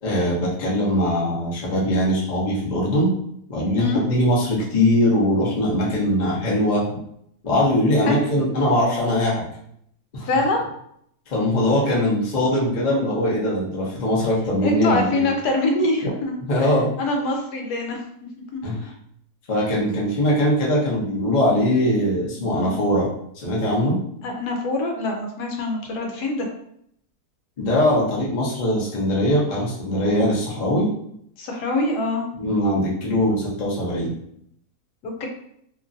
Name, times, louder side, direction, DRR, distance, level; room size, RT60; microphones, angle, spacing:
voice 1, 0.0-3.1 3.5-6.8 7.4-9.4 10.1-10.3 11.3-15.2 16.4-16.9 18.6-18.9 19.5-23.1 23.3-24.0 27.6-30.9 32.4-34.1, left 1 dB, 40° left, -5 dB, 0.6 m, -21 dB
voice 2, 10.2-10.6 14.6-16.4 17.0-18.0 18.5-18.9 22.5-22.8 24.2-26.5 31.4-32.2 35.0-35.3, left 2 dB, 80° left, 2 dB, 1.2 m, -24 dB
2.9 x 2.5 x 2.5 m, 0.71 s
omnidirectional pair, 1.7 m